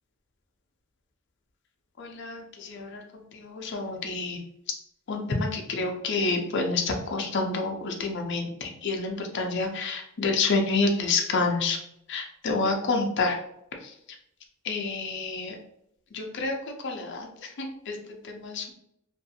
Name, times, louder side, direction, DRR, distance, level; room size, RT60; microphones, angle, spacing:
voice 1, 2.0-4.4 5.1-11.8 12.1-13.4 13.8-13.9 14.6-15.6 16.1-18.7, left 3 dB, 55° left, 2 dB, 0.5 m, -29 dB
2.6 x 2.3 x 2.7 m, 0.78 s
head